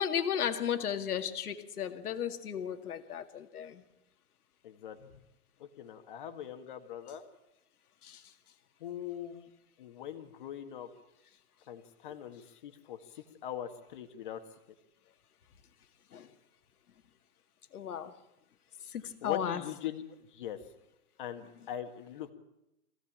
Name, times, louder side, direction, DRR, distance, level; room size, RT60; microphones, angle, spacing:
voice 1, 0.0-3.8 8.0-8.2 16.1-16.3 17.7-18.1 18.9-19.6, left 8 dB, 80° left, 2.2 m, -34 dB
voice 2, 4.6-5.0 5.6-7.2 8.8-9.5 9.8-10.9 11.7-14.4 19.2-20.0 20.3-20.6 21.2-22.3, left 10 dB, 35° left, 1.8 m, -41 dB
24.5 x 16.5 x 8.8 m
hypercardioid pair, 180°, 45 cm